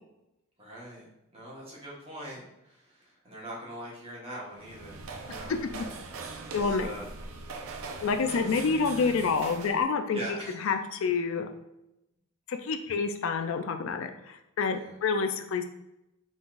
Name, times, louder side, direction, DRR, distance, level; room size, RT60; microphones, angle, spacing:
voice 1, 0.6-6.0 6.5-7.1 8.4-8.6 9.0-9.1 10.1-10.7 14.7-15.0, right 1 dB, 25° right, -5 dB, 1.2 m, -43 dB
sound 1, 4.5-9.9, right 3 dB, 75° right, 0.5 m, -41 dB
voice 2, 6.5-6.9 8.0-10.2 10.6-11.5 12.5-15.6, left 5 dB, 65° left, 6 dB, 0.4 m, -28 dB
3.9 x 3.8 x 2.5 m, 0.88 s
head